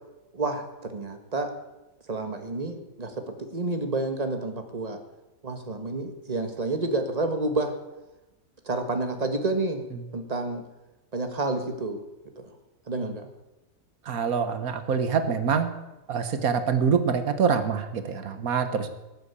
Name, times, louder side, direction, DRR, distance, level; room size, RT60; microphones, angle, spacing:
voice 1, 0.3-1.5 2.1-5.0 5.4-7.7 8.7-9.8 10.1-10.6 11.1-12.0 12.4-12.5 12.9-13.3, right 2 dB, 30° right, 6 dB, 1.7 m, -29 dB
voice 2, 14.1-15.7 16.1-18.9, right 6 dB, 85° right, 9 dB, 1.7 m, -25 dB
18.5 x 8.0 x 8.3 m, 1.0 s
omnidirectional pair, 1.5 m